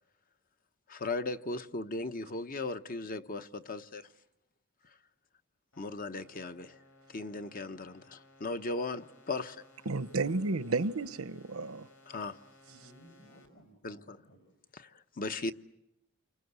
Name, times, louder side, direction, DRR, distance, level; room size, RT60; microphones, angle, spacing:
voice 1, 0.9-4.1 5.8-6.8 7.1-9.6 12.1-12.4 13.8-14.2 14.7-15.5, left 2 dB, 40° left, 1.0 m, -37 dB
sound 1, 5.7-13.5, left 2 dB, 80° left, 5.8 m, -60 dB
voice 2, 9.9-11.9, right 3 dB, 85° right, 1.0 m, -32 dB
voice 3, 12.7-14.5, equal, 60° left, 6.5 m, -58 dB
29.0 x 25.0 x 8.1 m
head